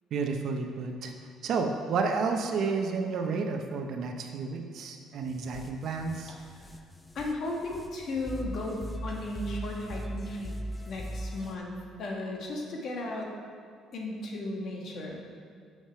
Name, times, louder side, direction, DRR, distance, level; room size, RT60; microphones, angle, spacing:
voice 1, 0.1-1.1 1.4-6.3, right 4 dB, 55° right, 4 dB, 0.7 m, -31 dB
sound 1, 5.2-11.6, equal, 10° left, 0.5 m, -40 dB
voice 2, 7.1-10.5 10.9-11.7 12.0-13.3 13.9-15.2, left 2 dB, 50° left, 0 dB, 1.4 m, -35 dB
6.6 x 6.2 x 5.6 m, 2.3 s
cardioid pair, 155°, 0 cm